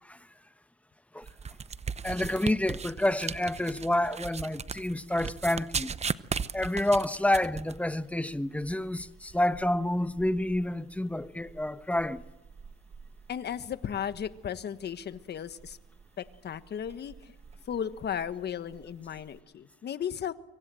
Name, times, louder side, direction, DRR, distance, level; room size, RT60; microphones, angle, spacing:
sound 1, 1.2-19.4, right 6 dB, 35° right, 0.8 m, -40 dB
voice 1, 2.0-5.9 6.5-12.2, left 1 dB, 5° left, 1.1 m, -29 dB
voice 2, 13.3-15.8 16.2-17.3 17.7-20.3, left 8 dB, 55° left, 1.4 m, -35 dB
25.0 x 25.0 x 7.7 m
cardioid pair, 90°, 20 cm